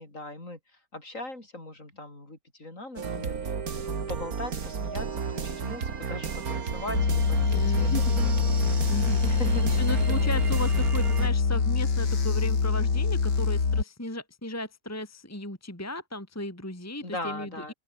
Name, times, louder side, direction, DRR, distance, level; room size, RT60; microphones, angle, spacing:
voice 1, 0.0-3.5 3.8-8.3 9.2-10.4 17.0-17.7, left 2 dB, 45° left, 6.5 m, -40 dB
sound 1, 3.0-11.3, right 6 dB, 55° right, 2.2 m, -33 dB
sound 2, 6.9-13.8, left 5 dB, 70° left, 3.4 m, -24 dB
voice 2, 7.5-8.2 8.9-17.7, left 1 dB, 10° left, 2.4 m, -36 dB
open air
omnidirectional pair, 1.9 m